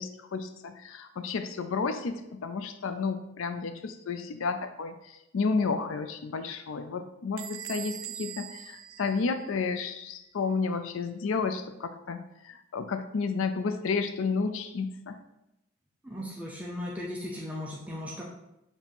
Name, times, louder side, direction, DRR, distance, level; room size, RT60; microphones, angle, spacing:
voice 1, 0.0-15.2, left 4 dB, 75° left, 9 dB, 0.4 m, -31 dB
Bell / Door, 7.4-9.9, right 12 dB, 80° right, 0.5 m, -42 dB
voice 2, 16.0-18.2, left 1 dB, 5° right, -3 dB, 0.6 m, -37 dB
7.3 x 2.7 x 5.3 m, 0.89 s
head